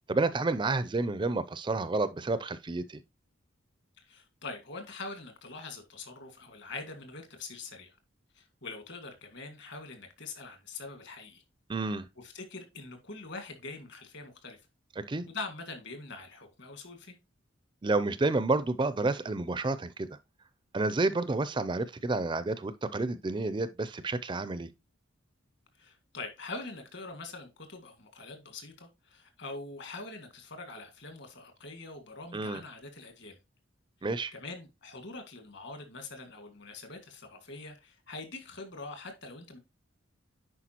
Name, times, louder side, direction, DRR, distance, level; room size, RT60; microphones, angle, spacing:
voice 1, 0.1-3.0 11.7-12.1 15.0-15.3 17.8-20.1 20.7-24.7 32.3-32.6 34.0-34.3, right 3 dB, 25° right, 0.4 m, -30 dB
voice 2, 4.0-7.9 8.3-11.4 12.2-14.6 15.3-17.1 25.8-33.4 34.3-39.6, left 3 dB, 55° left, 1.8 m, -44 dB
10.0 x 4.8 x 2.9 m
head